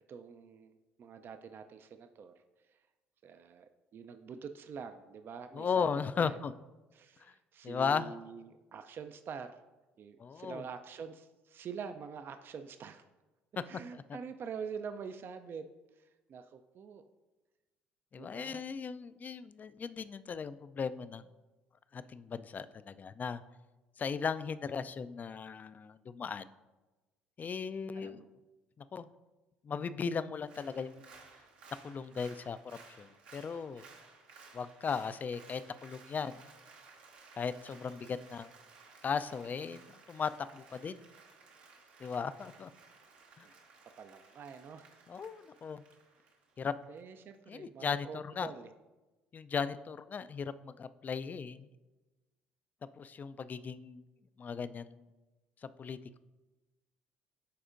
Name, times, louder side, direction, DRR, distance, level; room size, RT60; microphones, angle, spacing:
voice 1, 0.0-2.3 2.7-2.8 3.2-6.4 6.9-9.6 10.0-13.0 13.6-15.7 15.9-17.1 18.2-18.6 27.9-28.3 42.0-42.1 43.4-43.5 44.0-45.1 46.9-48.7, right 6 dB, 45° right, 8 dB, 0.4 m, -46 dB
voice 2, 5.5-6.5 7.6-8.1 10.2-10.6 13.9-14.0 18.1-21.2 21.9-23.4 24.0-26.5 27.4-28.2 28.9-29.1 29.6-31.2 31.8-33.1 33.3-33.8 34.5-36.3 37.4-38.5 39.0-39.8 40.1-41.1 42.0-42.7 43.4-43.5 45.1-45.8 46.6-46.7 47.5-48.5 49.3-51.7 53.0-54.0 54.4-55.0 55.6-56.2, left 6 dB, 35° left, 14 dB, 0.3 m, -37 dB
Applause, 30.4-47.0 47.3-47.4, right 4 dB, 80° right, 1.2 m, -58 dB
11.0 x 4.2 x 2.5 m, 1.1 s
hypercardioid pair, 60°, 5 cm